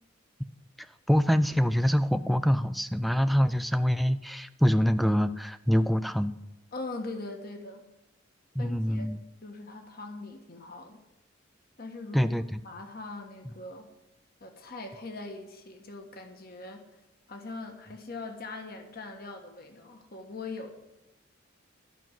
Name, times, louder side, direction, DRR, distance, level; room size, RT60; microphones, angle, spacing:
voice 1, 1.1-6.3 8.6-9.2 12.1-12.4, equal, ahead, 13 dB, 0.4 m, -25 dB
voice 2, 6.7-7.9 8.6-9.1 9.4-11.0 11.8-12.3 12.6-13.9 14.4-16.8 17.3-20.7, left 2 dB, 45° left, 4 dB, 1.3 m, -41 dB
12.5 x 6.2 x 9.1 m, 0.95 s
head